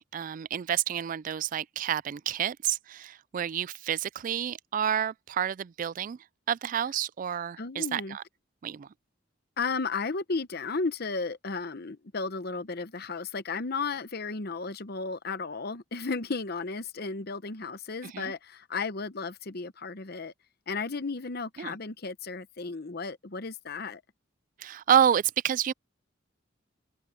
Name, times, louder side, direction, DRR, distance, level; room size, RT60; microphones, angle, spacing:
voice 1, 0.0-6.2 6.5-8.2 8.6-8.9 18.1-18.3 21.6-21.7 24.6-25.7, right 9 dB, 40° right, 0.3 m, -29 dB
voice 2, 7.6-8.2 9.6-20.3 20.7-24.0, left 4 dB, 50° left, 0.9 m, -34 dB
head